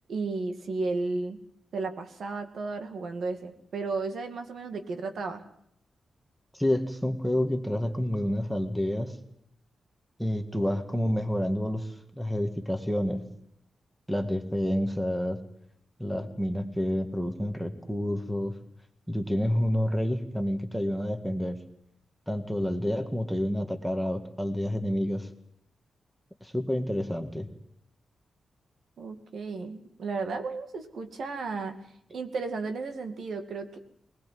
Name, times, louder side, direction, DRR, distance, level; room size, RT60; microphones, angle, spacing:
voice 1, 0.1-1.4 1.7-5.4 29.0-31.8 32.1-33.8, right 3 dB, 65° right, 6 dB, 2.3 m, -33 dB
voice 2, 6.5-9.2 10.2-13.2 14.1-15.4 16.0-18.6 19.1-21.6 22.3-25.3 26.4-27.5, equal, ahead, 7 dB, 1.8 m, -29 dB
21.0 x 20.0 x 7.7 m, 0.72 s
wide cardioid pair, 140°, 0 cm